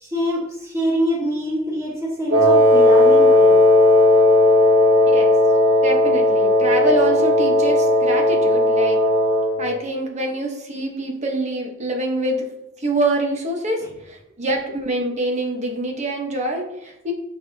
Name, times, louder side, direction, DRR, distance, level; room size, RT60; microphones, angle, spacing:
voice 1, 0.0-3.6, equal, 15° right, -2 dB, 1.4 m, -25 dB
Wind instrument woodwind instrument, 2.3-9.6, left 1 dB, 85° right, 1.4 m, -15 dB
voice 2, 5.8-9.0 9.6-12.5 12.8-17.1, right 1 dB, 35° right, 1 dB, 1.2 m, -25 dB
7.7 x 5.7 x 2.8 m, 0.87 s
head